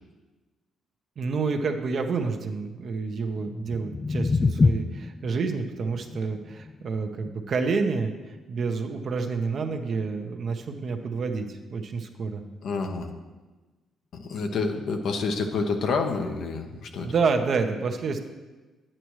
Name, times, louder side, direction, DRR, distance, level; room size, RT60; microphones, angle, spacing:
voice 1, 1.2-8.1 8.5-12.4 17.0-18.2, right 4 dB, 55° right, 5 dB, 0.9 m, -28 dB
sound 1, 3.5-9.5, left 4 dB, 30° left, 0.3 m, -29 dB
voice 2, 12.6-13.1 14.1-17.1, left 4 dB, 70° left, 4 dB, 1.0 m, -28 dB
9.9 x 8.8 x 3.2 m, 1.2 s
cardioid pair, 90°, 0 cm